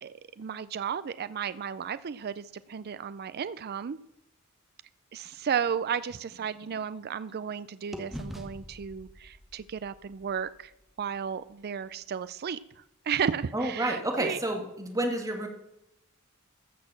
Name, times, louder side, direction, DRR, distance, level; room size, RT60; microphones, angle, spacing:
voice 1, 0.0-4.0 5.1-10.7 11.0-14.4, right 7 dB, 50° right, 15 dB, 0.4 m, -34 dB
sound 1, 5.2-7.5 7.9-11.9, equal, ahead, 1.2 m, -47 dB
voice 2, 13.5-15.5, right 1 dB, 15° right, 2 dB, 2.0 m, -30 dB
14.5 x 6.6 x 7.1 m, 0.84 s
head